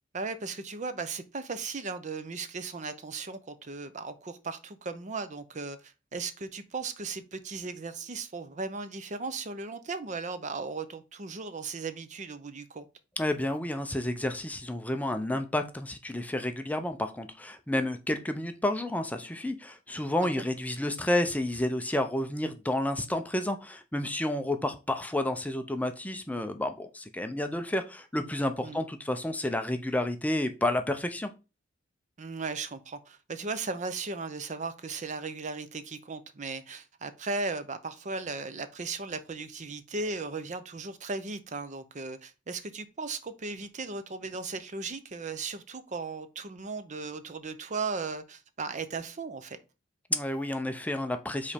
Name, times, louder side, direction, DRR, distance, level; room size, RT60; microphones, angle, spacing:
voice 1, 0.1-12.8 20.2-20.4 28.6-28.8 32.2-49.6, right 4 dB, 40° right, 0.6 m, -37 dB
voice 2, 13.2-31.3 50.1-51.5, left 1 dB, 10° left, 0.6 m, -30 dB
5.2 x 4.2 x 5.1 m
head